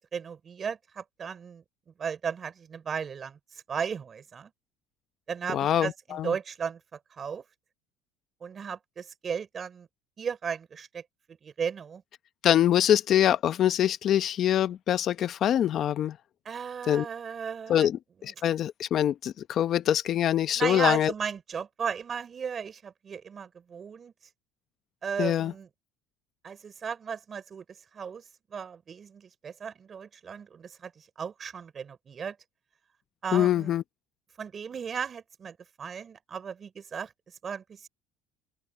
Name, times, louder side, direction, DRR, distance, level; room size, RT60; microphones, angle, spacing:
voice 1, 0.1-1.6 2.0-3.4 3.7-4.5 5.3-7.4 8.4-9.9 10.2-11.0 11.4-12.0 16.4-17.9 18.2-18.3 20.6-24.1 25.0-25.7 26.4-27.6 27.9-28.2 28.5-32.4 33.2-33.7 34.4-37.1 37.4-37.9, right 6 dB, 30° right, 4.4 m, -35 dB
voice 2, 5.5-6.3 12.4-16.2 16.9-17.1 17.7-21.1 25.2-25.5 33.3-33.8, left 11 dB, 45° left, 0.9 m, -24 dB
open air
cardioid pair, 140°, 0 cm